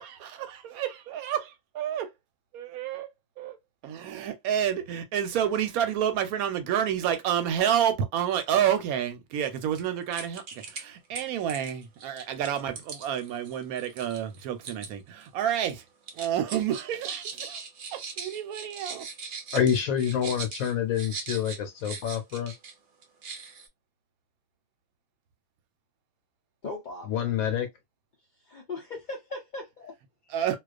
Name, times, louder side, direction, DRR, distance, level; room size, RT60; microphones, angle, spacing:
voice 1, 0.0-2.1 2.5-3.1 3.4-3.6 3.8-10.4 10.7-15.8 16.1-17.6 17.9-19.0 30.3-30.6, right 9 dB, 90° right, 1.1 m, -29 dB
sound 1, 9.7-9.8 10.1-10.8 11.1-14.9 15.2-15.7 16.1-22.7 23.0-23.7, right 5 dB, 60° right, 0.6 m, -40 dB
voice 2, 19.5-22.5 27.1-27.7, left 9 dB, 75° left, 1.1 m, -27 dB
voice 3, 26.6-27.3 28.5-29.9, left 3 dB, 60° left, 0.5 m, -38 dB
2.3 x 2.3 x 2.3 m
omnidirectional pair, 1.5 m